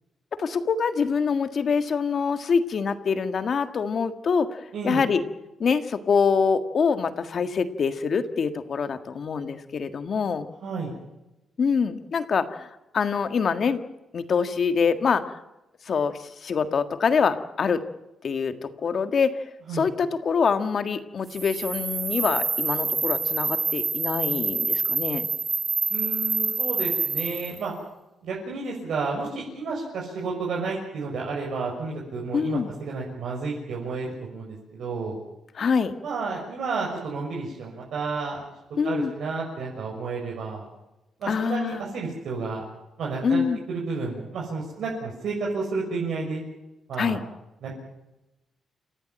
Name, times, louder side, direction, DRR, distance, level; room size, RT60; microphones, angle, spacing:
voice 1, 0.4-5.2 5.6-10.5 11.6-12.7 12.9-13.8 14.1-15.4 15.8-17.8 18.2-19.4 19.7-25.3 32.3-32.7 35.5-35.9 38.8-39.1 41.3-41.8 43.2-43.6 47.0-47.2, left 5 dB, 40° left, 9 dB, 1.7 m, -25 dB
voice 2, 4.7-5.0 10.6-10.9 19.7-19.9 25.9-27.7 28.2-35.2 36.0-38.4 38.8-40.7 41.2-42.6 43.0-43.4 43.7-46.4 46.9-47.2 47.6-47.8, right 4 dB, 65° right, -3 dB, 6.4 m, -31 dB
sound 1, 21.3-27.6, right 4 dB, 30° right, 1.8 m, -27 dB
29.0 x 15.5 x 8.9 m, 0.97 s
wide cardioid pair, 165°, 0 cm